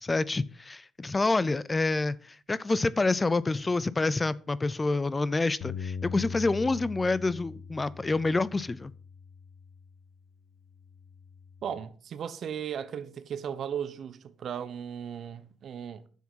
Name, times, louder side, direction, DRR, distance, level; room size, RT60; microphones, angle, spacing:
voice 1, 0.0-8.9, left 3 dB, 25° left, 0.5 m, -27 dB
Bass guitar, 5.6-10.1 10.7-11.8, left 6 dB, 85° left, 0.9 m, -41 dB
voice 2, 11.6-16.0, right 8 dB, 60° right, 1.0 m, -36 dB
9.4 x 7.4 x 5.6 m
cardioid pair, 90°, 0 cm